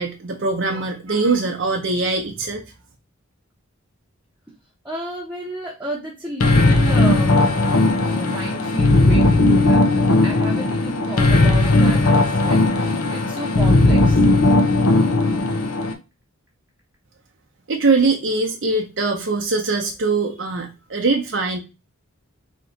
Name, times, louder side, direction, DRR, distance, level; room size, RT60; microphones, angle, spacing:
voice 1, 0.0-2.6 17.7-21.6, right 3 dB, 55° right, 1 dB, 0.7 m, -22 dB
voice 2, 4.8-7.5 7.9-14.2, right 1 dB, 5° right, -4 dB, 0.9 m, -32 dB
sound 1, 6.4-15.9, left 2 dB, 85° left, 0.8 m, -17 dB
4.4 x 3.0 x 3.9 m, 0.27 s
head